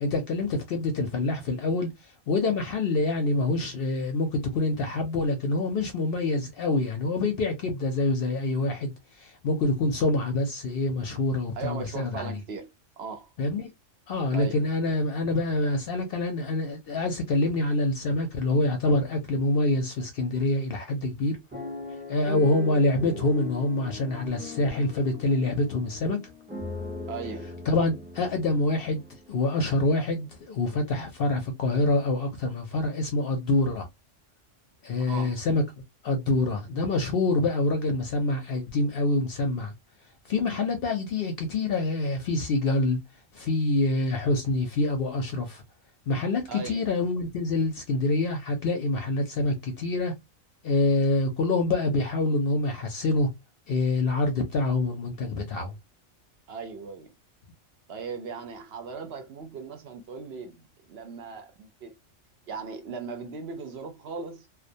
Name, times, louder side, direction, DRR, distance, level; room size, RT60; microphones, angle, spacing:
voice 1, 0.0-12.4 13.4-13.7 14.1-21.4 22.1-26.2 27.7-29.0 29.3-33.9 34.8-35.6 36.0-39.7 40.2-43.0 43.3-45.6 46.1-50.1 50.6-53.3 53.7-55.7, left 2 dB, 60° left, 0.7 m, -26 dB
voice 2, 11.5-12.7 13.0-13.3 14.3-14.6 27.1-27.5 35.0-35.4 46.5-46.8 56.5-57.1 57.9-61.9 62.5-64.5, right 5 dB, 65° right, 0.8 m, -38 dB
sound 1, 21.5-29.6 30.2-30.3 30.6-30.8, left 1 dB, 10° right, 0.4 m, -39 dB
2.3 x 2.1 x 2.5 m
omnidirectional pair, 1.3 m